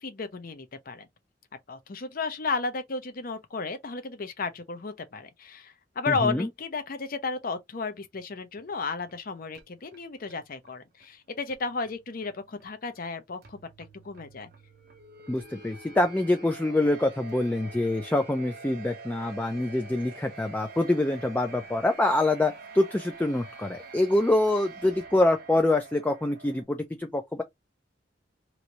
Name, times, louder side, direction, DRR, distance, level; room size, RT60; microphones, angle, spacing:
voice 1, 0.0-1.1 1.7-14.5, left 4 dB, 50° left, 0.6 m, -33 dB
voice 2, 6.1-6.5 15.3-27.4, left 2 dB, 10° left, 0.3 m, -25 dB
sound 1, 8.6-26.6, right 3 dB, 55° right, 0.8 m, -47 dB
3.0 x 2.6 x 2.9 m
head